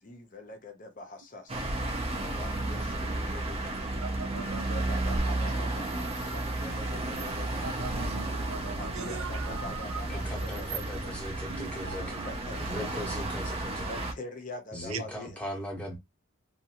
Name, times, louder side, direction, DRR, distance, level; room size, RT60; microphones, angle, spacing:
voice 1, 0.0-1.7 2.2-3.9 4.7-7.9 8.8-11.3 11.9-13.2 13.8-15.5, left 2 dB, 40° left, 0.6 m, -44 dB
sound 1, 1.5-14.1, right 2 dB, 30° right, 0.4 m, -33 dB
voice 2, 4.0-5.2 7.6-9.8 11.5-12.4 14.9-15.0, right 5 dB, 85° right, 0.6 m, -40 dB
voice 3, 10.1-13.9 14.7-16.0, equal, 5° left, 0.8 m, -39 dB
2.6 x 2.3 x 2.8 m
head